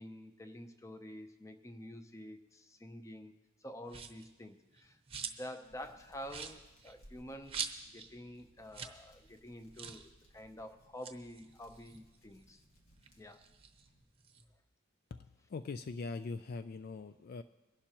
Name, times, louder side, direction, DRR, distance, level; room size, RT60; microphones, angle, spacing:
voice 1, 0.0-3.3 3.6-12.6 13.2-13.4, equal, 15° left, 7 dB, 0.7 m, -49 dB
sound 1, 3.9-4.3 4.7-5.6 5.9-6.0 6.3-8.1 8.4-8.5 8.7-9.0 9.3-9.4 9.7-10.1 10.8-12.6 13.0-14.4, right 6 dB, 30° right, 0.9 m, -44 dB
Hands, 5.6-14.0, equal, 85° left, 1.9 m, -65 dB
voice 2, 15.1-17.4, left 4 dB, 45° left, 11 dB, 0.3 m, -42 dB
22.5 x 11.5 x 3.0 m, 1.1 s
head